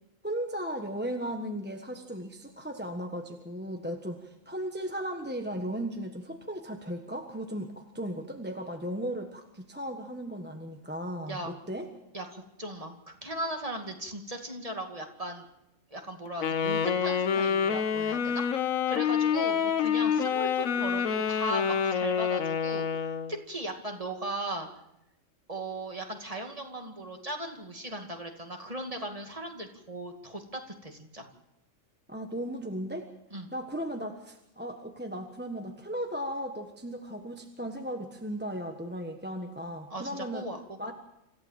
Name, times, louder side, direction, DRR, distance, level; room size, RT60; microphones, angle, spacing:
voice 1, 0.2-11.9 32.1-33.1 33.5-40.5 40.8-40.9, equal, 10° right, 4 dB, 1.3 m, -36 dB
voice 2, 12.1-15.5 15.9-22.9 23.3-24.7 25.5-31.3 33.3-33.5 39.9-40.8, right 1 dB, 25° right, 3 dB, 2.4 m, -37 dB
Wind instrument woodwind instrument, 16.4-23.4, left 7 dB, 90° left, 1.4 m, -27 dB
27.0 x 14.5 x 7.5 m, 0.87 s
omnidirectional pair, 1.4 m